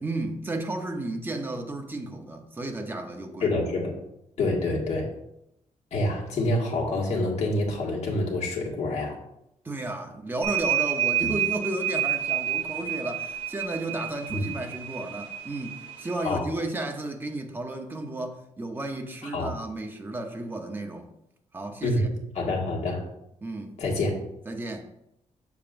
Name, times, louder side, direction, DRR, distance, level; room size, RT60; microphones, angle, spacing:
voice 1, 0.0-3.5 4.6-4.8 9.6-21.1 21.5-22.1 23.4-23.7 24.5-24.9, right 2 dB, 15° right, 3 dB, 0.7 m, -33 dB
voice 2, 3.4-3.9 4.4-5.1 5.9-9.2 11.2-11.3 14.3-14.4 16.2-16.4 19.3-19.5 21.8-22.1 22.4-23.0 23.8-24.2, left 2 dB, 60° left, -2 dB, 1.8 m, -27 dB
sound 1, 10.4-16.4, right 11 dB, 45° right, 1.9 m, -29 dB
7.0 x 6.9 x 2.6 m, 0.81 s
wide cardioid pair, 155°, 13 cm